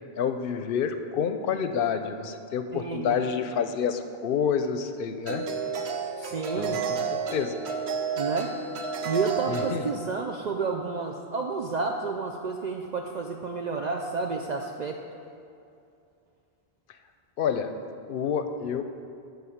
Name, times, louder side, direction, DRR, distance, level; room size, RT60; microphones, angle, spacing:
voice 1, 0.2-5.5 6.6-7.0 7.3-7.5 9.5-9.9 17.4-17.7 18.1-18.8, left 7 dB, 65° left, 8 dB, 0.7 m, -28 dB
voice 2, 2.7-3.2 6.2-6.8 8.2-8.5 9.0-15.0, right 4 dB, 55° right, 2 dB, 0.5 m, -30 dB
sound 1, 3.9-4.0 5.2-9.8, right 6 dB, 85° right, 1.0 m, -31 dB
10.5 x 3.8 x 7.1 m, 2.5 s
omnidirectional pair, 1.0 m